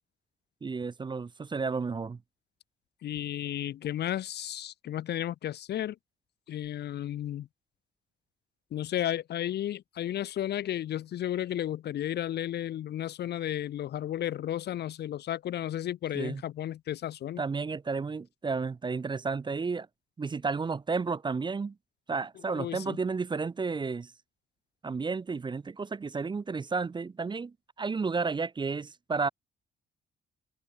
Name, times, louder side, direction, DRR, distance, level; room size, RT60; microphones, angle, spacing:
voice 1, 0.6-2.2 16.1-16.4 17.4-19.9 20.2-21.7 22.1-24.1 24.8-29.3, right 4 dB, 25° right, 0.5 m, -32 dB
voice 2, 3.0-6.0 6.5-7.5 8.7-17.4 22.6-23.0, left 11 dB, 55° left, 0.5 m, -33 dB
cardioid pair, 90°, 20 cm